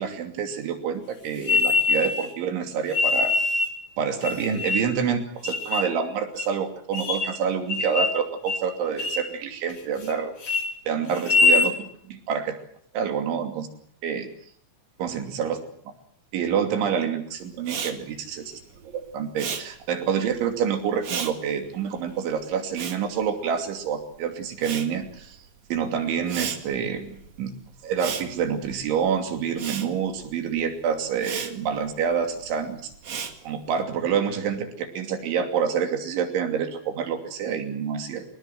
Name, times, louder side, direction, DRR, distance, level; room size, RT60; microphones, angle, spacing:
voice 1, 0.0-3.3 4.0-10.3 10.9-12.6 12.9-13.7 14.0-14.3 15.0-15.6 16.3-25.4 25.7-27.5 27.8-32.9 33.4-38.3, right 7 dB, 70° right, 5 dB, 5.2 m, -27 dB
sound 1, 1.4-2.3 2.9-3.8 4.2-5.0 5.4-5.9 6.4-6.5 6.9-7.4 7.7-8.2 8.5-8.7 9.0-9.3 9.7-10.1 10.4-10.7 11.2-11.7, left 4 dB, 35° left, 3.5 m, -23 dB
Respiratory sounds, 17.6-24.1 24.3-33.8, right 7 dB, 45° right, 2.5 m, -36 dB
25.5 x 19.5 x 7.8 m, 0.62 s
omnidirectional pair, 5.6 m